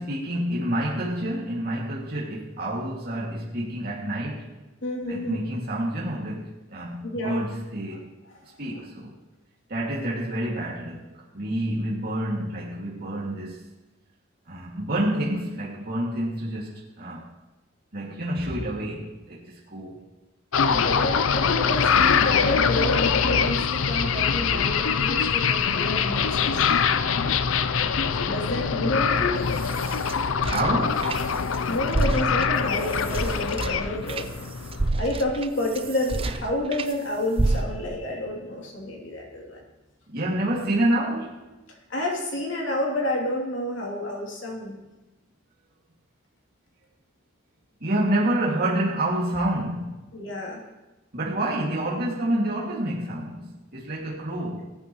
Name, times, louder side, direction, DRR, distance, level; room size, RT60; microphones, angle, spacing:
voice 1, 0.0-4.5 5.1-8.0 8.6-9.1 9.7-11.1 11.3-13.6 14.5-17.2 17.9-20.0 30.5-31.1 40.1-41.4 47.8-50.0 51.1-54.6, right 1 dB, 50° right, -6 dB, 2.3 m, -28 dB
voice 2, 4.8-5.4 7.0-7.4 8.3-8.4 20.7-26.6 28.2-29.4 31.6-34.3 35.0-39.6 41.9-44.8 50.1-50.6, left 1 dB, 65° left, -1 dB, 3.0 m, -29 dB
sound 1, 20.5-34.9, left 6 dB, 85° left, 0.5 m, -23 dB
sound 2, 29.2-31.6 31.9-36.9 37.4-38.1, right 2 dB, 30° right, 0.5 m, -29 dB
19.0 x 9.0 x 3.1 m, 1.1 s
head